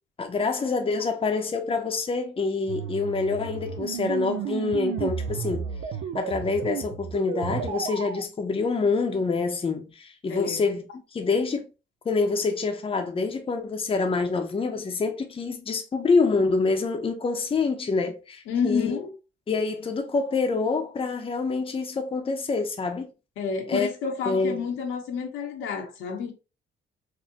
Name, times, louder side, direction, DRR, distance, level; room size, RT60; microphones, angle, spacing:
voice 1, 0.2-5.7 6.1-10.8 11.1-11.7 12.0-19.0 19.5-23.1 23.7-23.9 24.3-24.6, left 4 dB, 30° left, 0.7 m, -26 dB
sound 1, 2.7-8.2, right 8 dB, 90° right, 0.5 m, -32 dB
voice 2, 10.3-10.6 18.5-19.1 23.4-26.3, left 6 dB, 90° left, 1.0 m, -29 dB
4.1 x 2.2 x 2.8 m
cardioid pair, 90°, 20 cm